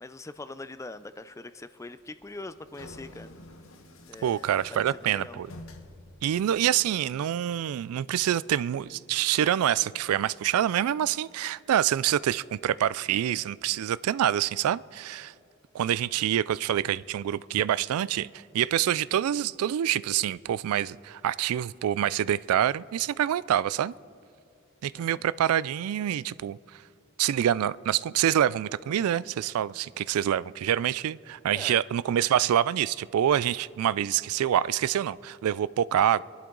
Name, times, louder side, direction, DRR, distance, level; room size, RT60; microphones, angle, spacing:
voice 1, 0.0-3.3 4.1-5.4 24.9-25.2 31.5-31.7 36.0-36.1, left 2 dB, 15° left, 13 dB, 0.4 m, -43 dB
sound 1, 2.0-7.1, left 1 dB, 65° left, 1.1 m, -49 dB
voice 2, 4.2-5.5 6.2-15.3 15.7-23.9 24.8-26.6 27.2-36.2, right 10 dB, 90° right, 19 dB, 0.3 m, -26 dB
29.0 x 11.5 x 3.9 m, 2.6 s
head